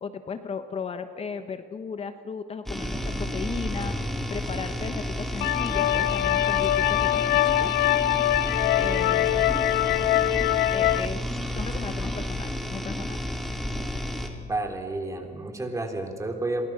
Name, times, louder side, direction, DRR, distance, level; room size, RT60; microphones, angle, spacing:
voice 1, 0.0-3.9 4.3-7.7 8.7-9.5 10.7-11.2 11.5-13.2, left 5 dB, 35° left, 9 dB, 1.2 m, -35 dB
sound 1, 2.7-14.3, equal, ahead, 3.0 m, -31 dB
sound 2, 5.4-11.1, left 14 dB, 75° left, 0.6 m, -23 dB
voice 2, 14.3-16.6, right 2 dB, 20° right, 4 dB, 3.8 m, -31 dB
30.0 x 22.5 x 6.4 m, 2.2 s
cardioid pair, 110°, 17 cm